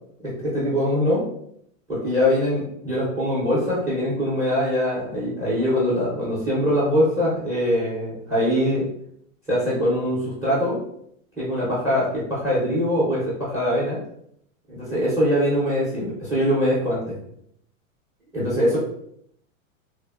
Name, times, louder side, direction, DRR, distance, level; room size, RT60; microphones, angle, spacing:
voice 1, 0.2-1.3 1.9-8.9 9.5-10.8 11.4-14.0 14.7-17.2 18.3-18.8, equal, 10° right, -7 dB, 0.5 m, -23 dB
3.1 x 2.0 x 2.3 m, 0.70 s
supercardioid pair, 150°, 40 cm